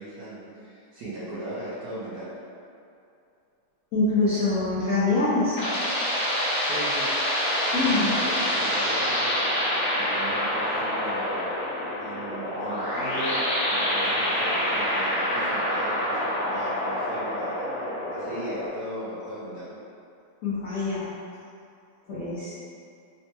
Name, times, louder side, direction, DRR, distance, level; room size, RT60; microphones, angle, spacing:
voice 1, 0.0-2.3 6.6-7.1 7.8-9.4 9.9-11.4 12.0-17.7 18.1-19.7, right 1 dB, 65° right, -10 dB, 1.0 m, -37 dB
voice 2, 3.9-5.6 7.7-8.2 20.4-21.1 22.1-22.5, left 3 dB, 75° left, -11 dB, 0.7 m, -24 dB
sound 1, 5.1-18.7, equal, 50° left, 1.2 m, -27 dB
4.1 x 2.2 x 2.9 m, 2.5 s
omnidirectional pair, 2.2 m